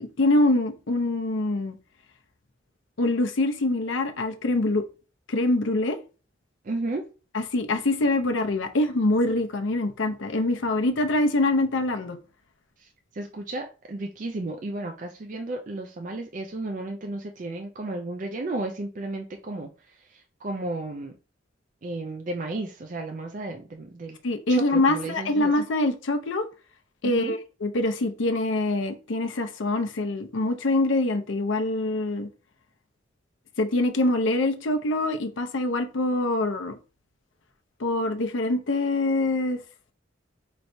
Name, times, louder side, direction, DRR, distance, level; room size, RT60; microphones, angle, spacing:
voice 1, 0.0-1.8 3.0-4.8 5.3-6.0 7.3-12.2 24.2-26.4 27.0-32.3 33.6-36.7 37.8-39.6, left 2 dB, 80° left, 0.6 m, -24 dB
voice 2, 6.6-7.0 12.8-21.1 21.8-24.2 24.5-25.5 27.0-27.4, right 2 dB, 40° right, 0.4 m, -33 dB
4.4 x 3.1 x 2.6 m
head